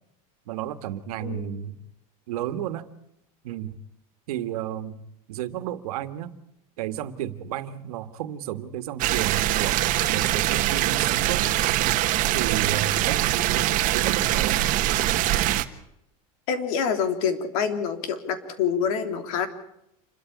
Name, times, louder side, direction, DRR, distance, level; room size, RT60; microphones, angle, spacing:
voice 1, 0.5-1.8 2.3-2.9 3.4-3.8 4.3-5.0 5.3-6.4 6.8-11.5 12.3-14.8, right 11 dB, 90° right, 11 dB, 1.8 m, -32 dB
voice 2, 1.2-1.6 16.5-19.5, left 7 dB, 70° left, 8 dB, 3.4 m, -26 dB
sound 1, 9.0-15.6, right 15 dB, 45° right, 1.5 m, -23 dB
28.0 x 13.0 x 8.6 m, 0.79 s
supercardioid pair, 145°, 19 cm